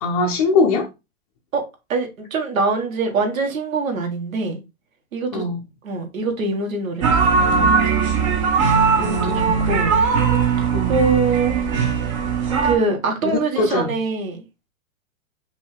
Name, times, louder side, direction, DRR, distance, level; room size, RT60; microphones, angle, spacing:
voice 1, 0.0-0.9 5.3-5.6 8.9-9.5 10.7-11.0 13.2-13.9, left 3 dB, 25° left, 0.5 m, -21 dB
voice 2, 1.9-4.6 5.1-5.4 5.8-7.9 9.0-9.3 9.6-10.0 10.6-11.6 12.6-14.4, right 3 dB, 80° right, 1.8 m, -24 dB
sound 1, 7.0-12.7, right 5 dB, 25° right, 0.6 m, -19 dB
5.3 x 2.8 x 3.3 m
hypercardioid pair, 160°, 40 cm